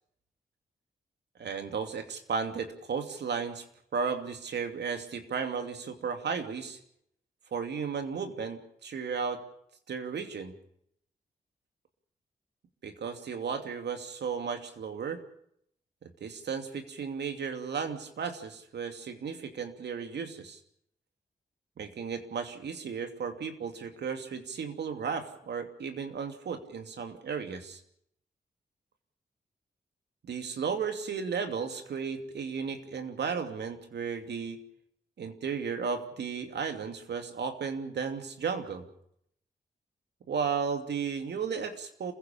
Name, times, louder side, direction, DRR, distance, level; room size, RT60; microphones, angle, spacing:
voice 1, 1.4-3.6 3.9-6.8 7.5-9.4 9.9-10.5 12.8-15.2 16.0-20.6 21.8-27.8 30.2-34.6 35.2-38.9 40.3-42.1, right 6 dB, 75° right, 7 dB, 2.7 m, -34 dB
27.5 x 16.0 x 7.1 m, 0.72 s
supercardioid pair, 45°, 18 cm